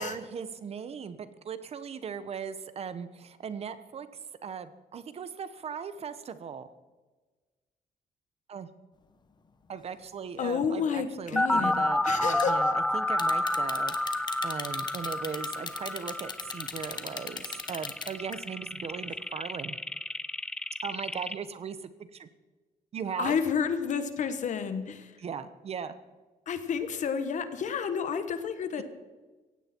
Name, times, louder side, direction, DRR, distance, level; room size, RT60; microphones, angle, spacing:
voice 1, 0.0-4.1 4.4-6.7 8.5-8.7 9.7-13.9 14.4-19.8 20.8-22.3 22.9-23.4 25.2-26.0 28.8-28.9, right 7 dB, 40° right, 13 dB, 0.9 m, -38 dB
voice 2, 10.4-12.5 23.2-25.1 26.5-28.8, left 6 dB, 55° left, 10 dB, 1.5 m, -30 dB
sound 1, 11.4-21.3, left 1 dB, 5° left, 0.6 m, -30 dB
sound 2, 12.4-12.5 13.2-18.4 18.8-19.1, left 5 dB, 30° left, 1.2 m, -37 dB
17.5 x 15.5 x 4.5 m, 1.3 s
cardioid pair, 165°, 16 cm